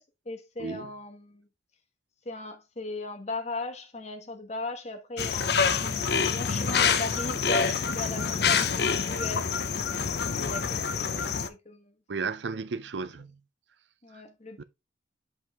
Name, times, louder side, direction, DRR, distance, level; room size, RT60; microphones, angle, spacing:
voice 1, 0.0-1.5 2.2-9.4 10.4-11.9 14.0-14.6, left 2 dB, 35° left, 1.3 m, -37 dB
voice 2, 0.6-0.9 12.1-13.4 14.6-14.7, right 4 dB, 70° right, 0.6 m, -34 dB
sound 1, 5.2-11.5, left 6 dB, 60° left, 0.7 m, -27 dB
6.3 x 5.3 x 3.5 m
head